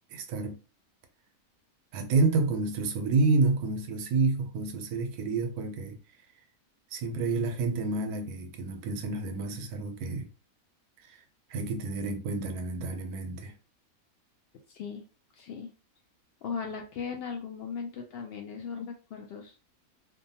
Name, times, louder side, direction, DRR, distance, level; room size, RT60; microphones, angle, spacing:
voice 1, 0.1-0.6 1.9-6.0 6.9-10.3 11.5-13.5, right 3 dB, 90° right, 1.1 m, -29 dB
voice 2, 14.7-15.0 15.3-15.7 16.4-19.5, left 6 dB, 90° left, 0.5 m, -38 dB
2.7 x 2.2 x 2.7 m
omnidirectional pair, 1.6 m